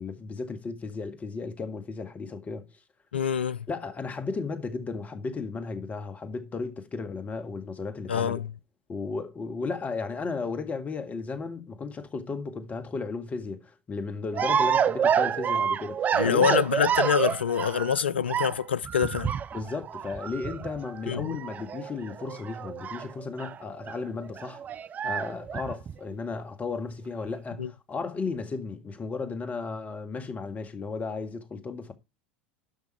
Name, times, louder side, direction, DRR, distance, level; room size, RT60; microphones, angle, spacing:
voice 1, 0.0-2.7 3.7-8.4 8.9-16.6 19.5-24.6 25.0-31.9, left 4 dB, 25° left, 1.9 m, -34 dB
voice 2, 3.1-3.6 8.1-8.5 16.1-19.3 21.1-21.4 27.6-27.7, left 7 dB, 80° left, 0.5 m, -26 dB
sound 1, 14.3-18.0 18.3-23.6 23.8-24.0 24.2-26.1, right 8 dB, 30° right, 0.5 m, -28 dB
12.0 x 6.0 x 4.5 m
figure-of-eight pair, 80°, 6 cm